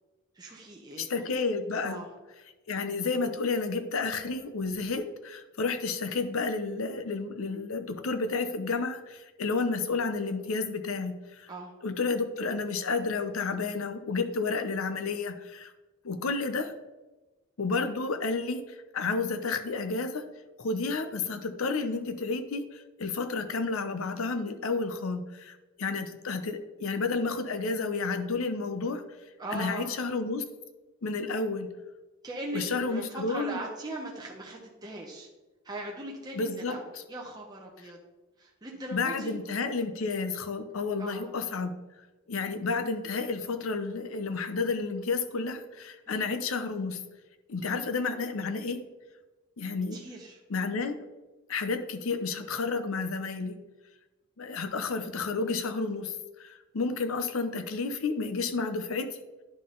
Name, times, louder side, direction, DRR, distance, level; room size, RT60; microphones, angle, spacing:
voice 1, 0.3-1.2 1.8-2.1 11.5-11.7 29.4-30.0 32.2-35.3 35.6-38.0 38.4-39.3 41.0-41.2 46.1-46.3 49.9-50.4, right 1 dB, 20° right, -2 dB, 0.8 m, -40 dB
voice 2, 1.0-2.0 2.7-11.5 11.8-15.7 16.0-16.7 17.6-20.2 20.6-29.0 29.5-30.4 31.0-31.7 32.5-33.6 36.3-36.8 38.9-41.7 42.3-47.0 47.5-48.8 49.6-50.0 50.5-51.0 51.5-53.5 54.4-59.1, left 4 dB, 70° left, 9 dB, 0.6 m, -31 dB
10.5 x 3.8 x 3.8 m, 1.2 s
head